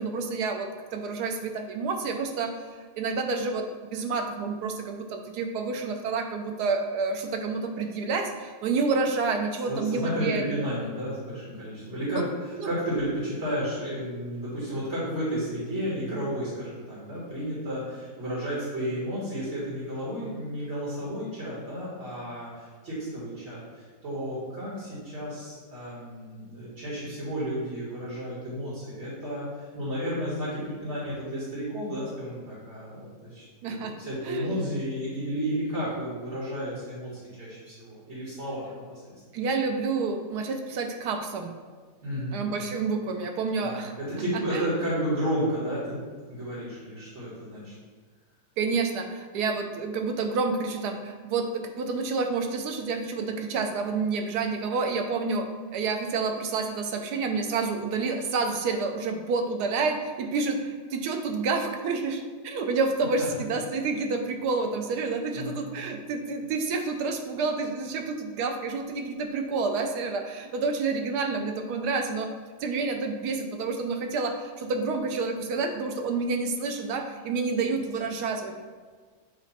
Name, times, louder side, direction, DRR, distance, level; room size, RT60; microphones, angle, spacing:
voice 1, 0.0-2.5 3.0-3.6 3.9-10.6 12.1-12.3 12.6-12.7 33.6-33.9 34.2-34.6 39.3-41.5 42.3-43.9 44.3-44.7 48.6-55.5 55.7-72.3 72.6-78.5, right 4 dB, 85° right, 4 dB, 1.2 m, -29 dB
voice 2, 9.7-39.1 42.0-42.4 43.6-46.0 46.3-47.7 63.2-63.3 65.3-65.6, equal, 45° right, -8 dB, 2.3 m, -32 dB
8.1 x 3.0 x 4.2 m, 1.5 s
omnidirectional pair, 1.7 m